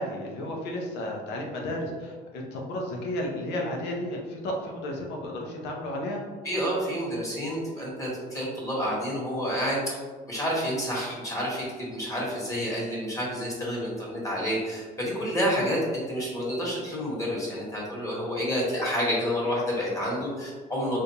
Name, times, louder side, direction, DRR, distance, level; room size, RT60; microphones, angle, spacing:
voice 1, 0.0-6.2, left 1 dB, 85° left, 0 dB, 0.8 m, -33 dB
voice 2, 6.4-10.0 10.3-21.0, equal, 20° left, -5 dB, 1.4 m, -29 dB
3.7 x 2.6 x 2.8 m, 1.5 s
cardioid pair, 110°, 17 cm